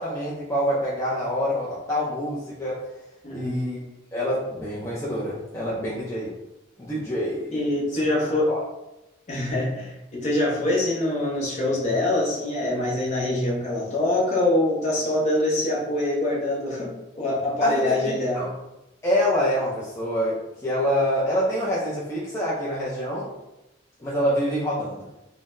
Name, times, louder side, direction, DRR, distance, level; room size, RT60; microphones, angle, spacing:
voice 1, 0.0-2.8 3.3-3.8 4.1-6.3 6.8-7.6 8.1-8.6 17.6-18.0 18.3-18.5 19.0-23.3 24.0-25.1, equal, 15° left, -7 dB, 0.5 m, -26 dB
voice 2, 3.2-3.6 7.5-8.5 9.3-18.5, left 1 dB, 40° left, -3 dB, 0.8 m, -24 dB
3.8 x 2.1 x 2.5 m, 0.94 s
head